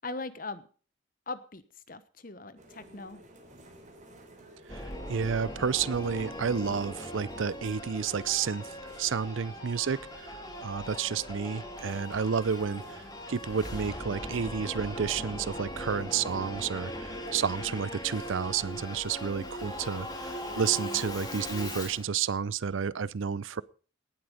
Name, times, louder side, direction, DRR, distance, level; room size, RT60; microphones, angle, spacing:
voice 1, 0.0-0.7 1.3-1.6 1.9-3.2, left 3 dB, 45° left, 14 dB, 1.1 m, -39 dB
sound 1, 2.6-18.8, right 1 dB, 35° right, 3.5 m, -55 dB
Singing / Musical instrument, 4.7-22.0, equal, 20° left, 2.8 m, -40 dB
voice 2, 4.7-13.0 13.3-23.6, right 6 dB, 75° right, 22 dB, 0.5 m, -31 dB
18.5 x 7.9 x 5.1 m, 0.39 s
head